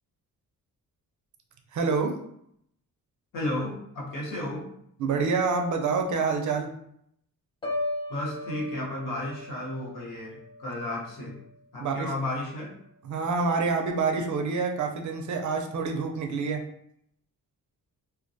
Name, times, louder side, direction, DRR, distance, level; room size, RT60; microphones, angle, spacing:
voice 1, 1.7-2.2 5.0-6.7 11.8-12.1 13.0-16.6, right 4 dB, 55° right, 3 dB, 0.4 m, -27 dB
voice 2, 3.3-4.7 8.1-11.4 11.7-12.7, left 1 dB, 65° left, -4 dB, 1.0 m, -33 dB
Piano, 7.6-11.6 12.0-12.3, left 2 dB, 15° left, 0.5 m, -37 dB
2.2 x 2.1 x 2.6 m, 0.72 s
cardioid pair, 110°, 35 cm